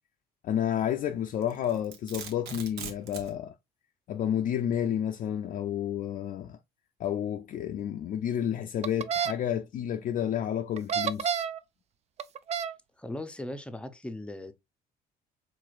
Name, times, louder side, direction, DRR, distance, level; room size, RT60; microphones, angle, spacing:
voice 1, 0.4-3.5 4.1-6.6 7.0-11.5, left 10 dB, 50° left, 0.4 m, -30 dB
Domestic sounds home sounds, 1.4-3.3, right 6 dB, 75° right, 1.1 m, -41 dB
sound 1, 8.8-9.3 10.8-11.6 12.2-12.7, right 7 dB, 40° right, 0.4 m, -29 dB
voice 2, 13.0-14.5, left 1 dB, 5° left, 0.6 m, -38 dB
4.8 x 3.8 x 2.4 m
cardioid pair, 110°, 17 cm